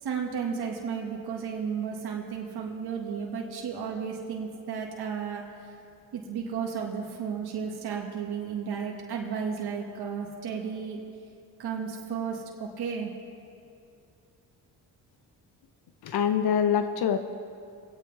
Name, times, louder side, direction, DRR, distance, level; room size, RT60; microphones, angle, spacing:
voice 1, 0.0-5.7 6.1-11.0 11.6-13.1, right 6 dB, 65° right, 0 dB, 1.7 m, -33 dB
voice 2, 16.0-17.2, left 8 dB, 65° left, 9 dB, 0.8 m, -24 dB
23.5 x 8.6 x 3.4 m, 2.4 s
supercardioid pair, 65°, 41 cm